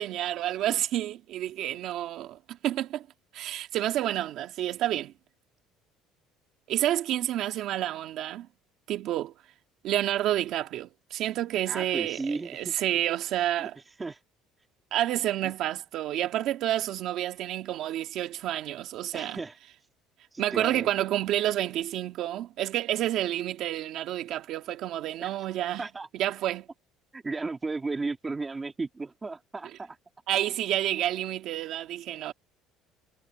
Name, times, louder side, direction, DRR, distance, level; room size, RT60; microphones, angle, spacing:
voice 1, 0.0-3.1 3.3-5.1 6.7-8.5 8.9-9.3 9.8-13.7 14.9-19.4 20.4-25.8 26.1-26.7 30.3-32.3, right 13 dB, 55° right, 1.9 m, -29 dB
voice 2, 11.7-12.8 13.6-13.7 14.0-14.2 15.4-15.5 19.1-19.6 20.3-20.9 25.2-25.4 25.8-26.1 27.1-30.0, right 3 dB, 15° right, 2.2 m, -34 dB
cardioid pair, 160°, 0 cm